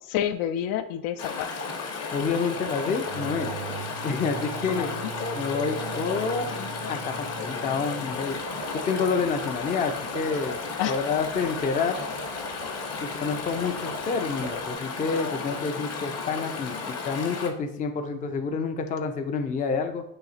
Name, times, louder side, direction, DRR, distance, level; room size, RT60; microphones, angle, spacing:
voice 1, 0.0-1.5 4.7-5.1 10.8-11.0, left 10 dB, 75° left, 10 dB, 0.5 m, -29 dB
Chatter / Stream, 1.2-17.5, left 4 dB, 40° left, 0.7 m, -33 dB
voice 2, 2.1-3.5 4.0-4.9 5.3-8.4 8.9-10.6 10.9-12.0 13.0-16.8 17.1-20.0, left 5 dB, 20° left, 6 dB, 0.4 m, -28 dB
sound 1, 3.0-8.5, right 8 dB, 45° right, 0.5 m, -40 dB
sound 2, 8.1-14.7, right 3 dB, 90° right, 1.1 m, -43 dB
4.0 x 2.4 x 4.0 m, 0.72 s
supercardioid pair, 95°, 41 cm